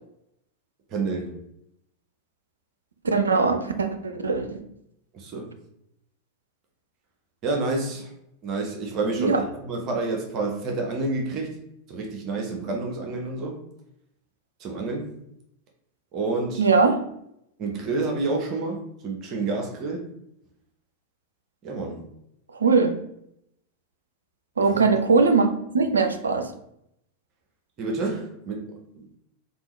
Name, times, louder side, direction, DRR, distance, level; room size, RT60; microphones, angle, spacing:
voice 1, 0.9-1.4 5.1-5.5 7.4-8.1 8.4-11.6 11.9-13.6 14.6-15.2 16.1-16.6 17.6-20.1 21.6-22.1 24.6-24.8 27.8-29.0, right 3 dB, 35° right, 1 dB, 0.7 m, -29 dB
voice 2, 3.0-4.6 9.2-9.4 16.6-17.0 22.6-22.9 24.6-25.5 25.7-26.5, right 4 dB, 75° right, 6 dB, 0.4 m, -20 dB
3.6 x 2.4 x 3.0 m, 0.76 s
figure-of-eight pair, 90°, 0 cm